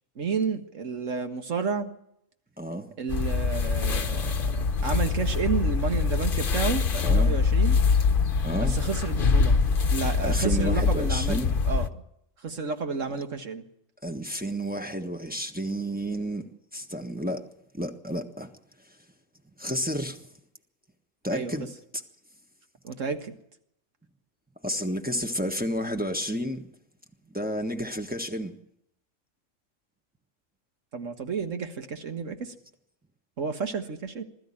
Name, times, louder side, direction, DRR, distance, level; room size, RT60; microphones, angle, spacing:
voice 1, 0.2-1.9 3.0-4.4 4.8-7.8 8.6-9.6 9.9-11.9 12.4-13.6 21.3-21.5 22.8-23.3 30.9-32.5 33.4-34.2, right 5 dB, 75° right, 2.0 m, -31 dB
voice 2, 2.6-2.9 7.0-7.3 8.4-8.8 10.2-11.5 14.0-17.5 17.7-18.5 19.6-20.3 21.2-21.7 24.6-26.7 27.3-28.5, equal, 5° right, 1.3 m, -31 dB
sound 1, 3.1-11.9, left 4 dB, 45° left, 1.1 m, -24 dB
21.0 x 13.5 x 10.0 m
omnidirectional pair, 1.3 m